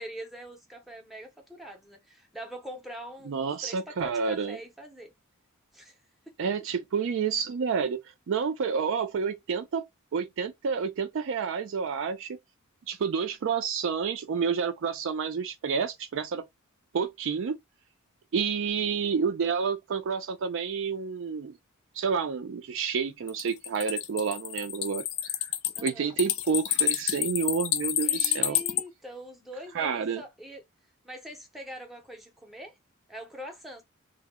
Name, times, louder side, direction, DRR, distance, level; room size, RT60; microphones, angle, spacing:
voice 1, 0.0-5.1 5.7-6.0 6.3-6.4 25.7-26.2 28.0-30.6 31.0-32.8 33.1-33.8, equal, ahead, 0.6 m, -43 dB
voice 2, 3.3-4.6 6.4-8.0 8.3-9.9 10.1-12.4 12.9-16.4 16.9-17.5 18.3-21.6 22.0-25.0 25.8-28.6 29.8-30.2, right 6 dB, 60° right, 0.4 m, -29 dB
sound 1, 23.3-28.8, left 12 dB, 65° left, 0.3 m, -28 dB
2.1 x 2.0 x 3.5 m
head